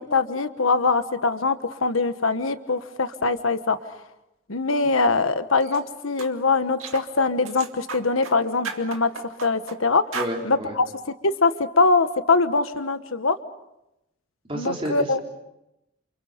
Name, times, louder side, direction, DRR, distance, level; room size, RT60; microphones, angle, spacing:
voice 1, 0.0-3.8 4.5-10.0 10.4-10.8 11.2-13.4 14.5-15.2, left 3 dB, 85° left, 10 dB, 1.3 m, -22 dB
sound 1, 5.6-5.8 6.2-6.3 6.8-7.1 7.4-8.4 8.6-9.8 10.1-10.4, right 4 dB, 85° right, 2.2 m, -34 dB
voice 2, 10.1-10.8 14.5-15.3, equal, 25° right, 0 dB, 4.2 m, -30 dB
29.5 x 28.0 x 5.3 m, 0.88 s
head